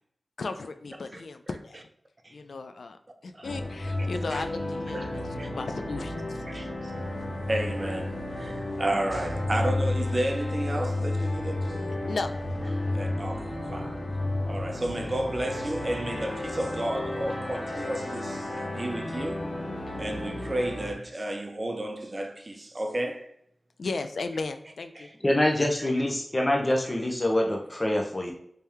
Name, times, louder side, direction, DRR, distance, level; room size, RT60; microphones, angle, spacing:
voice 1, 0.4-1.8 2.3-3.0 3.2-6.4 12.0-12.3 23.8-25.1, left 3 dB, 90° left, 0.3 m, -35 dB
sound 1, 3.4-20.9, left 2 dB, 65° left, 0.8 m, -32 dB
voice 2, 4.9-5.5 6.5-7.0 7.5-11.9 12.7-14.0 14.5-19.5 20.0-23.3 24.9-25.2, right 1 dB, 35° right, 0.5 m, -32 dB
voice 3, 25.2-28.3, left 1 dB, 30° left, 0.5 m, -25 dB
3.3 x 2.8 x 3.4 m
wide cardioid pair, 60°, 0 cm